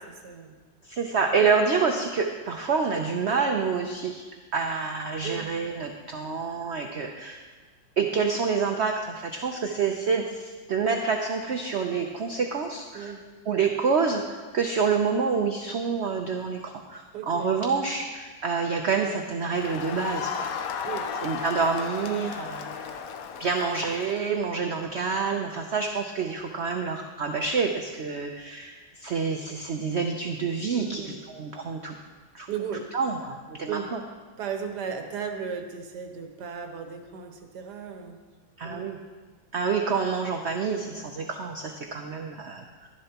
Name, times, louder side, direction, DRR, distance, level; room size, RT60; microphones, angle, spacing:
voice 1, 0.2-0.5 5.2-5.5 12.9-13.3 17.1-17.5 20.8-21.1 30.7-31.2 32.5-32.9 33.7-33.9 34.4-38.2 38.6-38.9, right 7 dB, 65° right, 4 dB, 1.5 m, -35 dB
voice 2, 0.9-4.2 4.5-7.4 8.0-13.1 13.5-20.5 21.2-22.9 23.4-31.9 32.3-32.5 32.9-34.0 38.6-39.0 39.5-42.6, right 5 dB, 90° right, 3 dB, 0.6 m, -27 dB
Crowd, 19.5-24.3, left 7 dB, 65° left, 0.9 m, -34 dB
12.5 x 11.0 x 2.9 m, 1.4 s
omnidirectional pair, 2.0 m